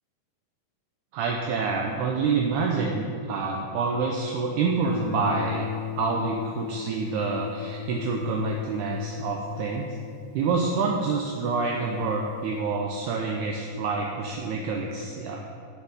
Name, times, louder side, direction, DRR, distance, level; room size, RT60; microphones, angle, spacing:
voice 1, 1.1-10.0 10.3-15.4, right 4 dB, 80° right, 1 dB, 2.1 m, -27 dB
Guitar, 4.8-11.5, left 7 dB, 85° left, 0.4 m, -36 dB
7.7 x 5.8 x 6.6 m, 2.3 s
omnidirectional pair, 3.7 m